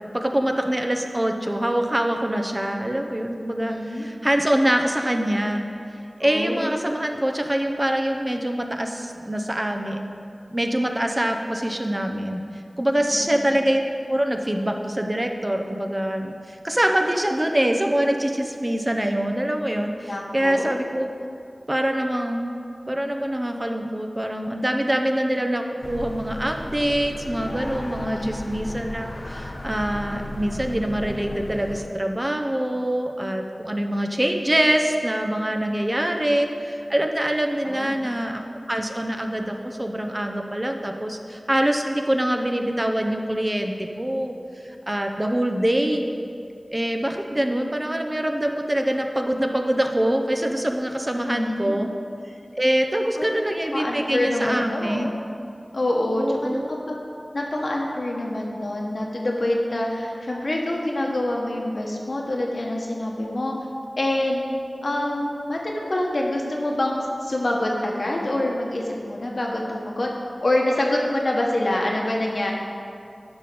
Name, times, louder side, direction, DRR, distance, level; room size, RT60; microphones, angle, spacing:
voice 1, 0.1-5.7 6.2-10.0 10.5-12.4 12.8-21.1 21.7-22.6 22.9-38.4 38.7-44.3 44.9-46.0 46.7-51.9 52.6-55.1 56.1-56.7, right 1 dB, 25° right, 3 dB, 0.7 m, -24 dB
voice 2, 3.6-4.1 6.2-6.7 13.1-13.4 20.1-20.8 28.0-28.5 37.6-37.9 51.3-51.7 53.2-53.3 53.7-55.1 55.7-56.6 56.9-57.0 57.3-63.6 64.0-64.4 64.8-70.1 70.4-72.5, left 1 dB, 65° left, -1 dB, 1.4 m, -26 dB
sound 1, 25.8-31.9, left 1 dB, 40° left, 0.7 m, -35 dB
10.5 x 3.7 x 6.9 m, 2.4 s
wide cardioid pair, 45°, 0 cm